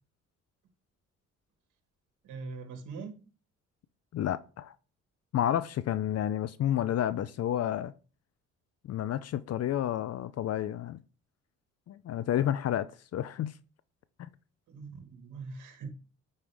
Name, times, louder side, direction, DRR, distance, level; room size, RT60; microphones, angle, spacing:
voice 1, 2.2-3.2 14.7-15.9, right 4 dB, 80° right, 1.6 m, -42 dB
voice 2, 4.1-4.7 5.3-7.9 8.8-11.0 11.9-12.9 13.1-13.5 14.2-14.3, left 11 dB, 55° left, 0.5 m, -30 dB
9.5 x 5.5 x 3.4 m
cardioid pair, 90°, 30 cm